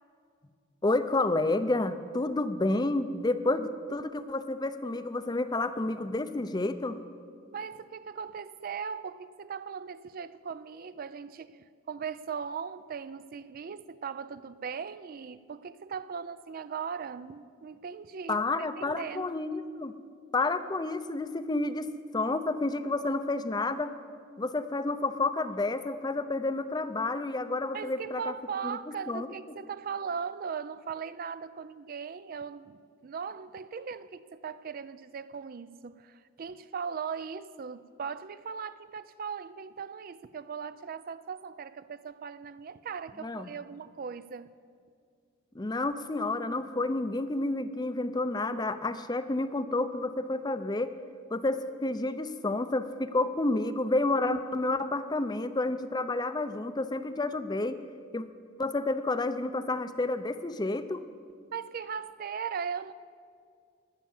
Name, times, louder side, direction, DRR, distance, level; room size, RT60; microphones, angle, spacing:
voice 1, 0.8-7.0 18.3-20.0 20.3-21.9 22.1-23.9 24.4-28.3 28.6-28.8 29.1-29.3 43.2-43.5 45.5-50.9 51.3-57.8 58.1-58.3 58.6-61.0, left 2 dB, 20° left, 0.5 m, -30 dB
voice 2, 7.5-18.4 18.8-19.3 27.7-44.5 61.5-62.9, right 6 dB, 45° right, 0.3 m, -39 dB
16.5 x 10.5 x 7.1 m
head